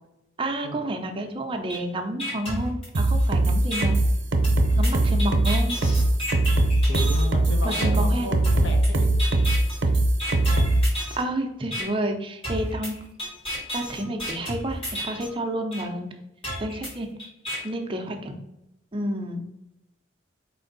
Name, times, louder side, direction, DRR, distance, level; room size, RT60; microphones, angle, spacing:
voice 1, 0.4-4.0 4.8-5.7 7.6-8.3 11.2-13.0 13.7-16.1 16.6-17.1 17.6-18.3 18.9-19.4, right 1 dB, 30° right, 4 dB, 0.5 m, -30 dB
sound 1, 1.7-1.8 2.2-3.2 3.7-3.8 4.4-7.3 7.7-7.8 8.4-8.9 9.2-9.8 10.2-11.2 11.7-11.8 12.4-15.3 15.7-15.8 16.4-17.6, equal, 30° left, 1.5 m, -32 dB
sound 2, 2.9-10.8, right 2 dB, 70° right, 0.7 m, -20 dB
voice 2, 6.9-9.1, left 1 dB, 70° left, 4 dB, 0.7 m, -34 dB
4.3 x 2.6 x 3.9 m, 0.87 s
head